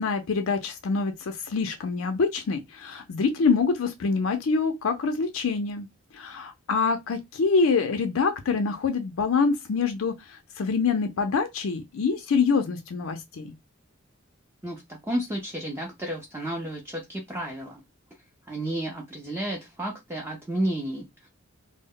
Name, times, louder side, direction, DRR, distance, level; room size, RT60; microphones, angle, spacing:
voice 1, 0.0-5.9 6.1-13.5, left 4 dB, 80° left, 0.4 m, -25 dB
voice 2, 14.6-17.8 18.5-21.3, right 1 dB, 10° right, 0.5 m, -32 dB
2.0 x 2.0 x 3.6 m
head